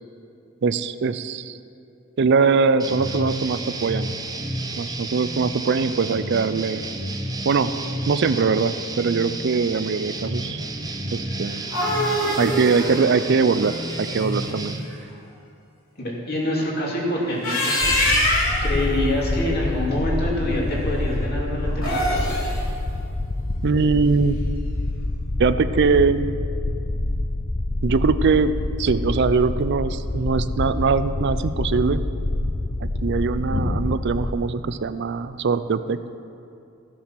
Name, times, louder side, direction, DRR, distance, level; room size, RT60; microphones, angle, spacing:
voice 1, 0.6-1.6 2.2-4.1 4.8-6.8 7.4-7.7 8.1-10.6 11.1-11.7 12.4-14.8 23.6-24.4 25.4-26.3 27.8-32.0 32.8-36.0, right 4 dB, 55° right, 13 dB, 0.4 m, -22 dB
sound 1, 2.8-14.8, right 2 dB, 20° right, 0.7 m, -31 dB
sound 2, 11.4-14.5 17.2-18.7 21.7-22.6, equal, 85° left, 3.0 m, -24 dB
voice 2, 16.0-17.8 18.3-18.4 18.6-22.0 33.5-33.6, left 1 dB, 50° left, -3 dB, 2.7 m, -26 dB
sound 3, 17.8-34.3, left 2 dB, 35° left, 0.6 m, -27 dB
15.0 x 7.3 x 5.9 m, 2.6 s
head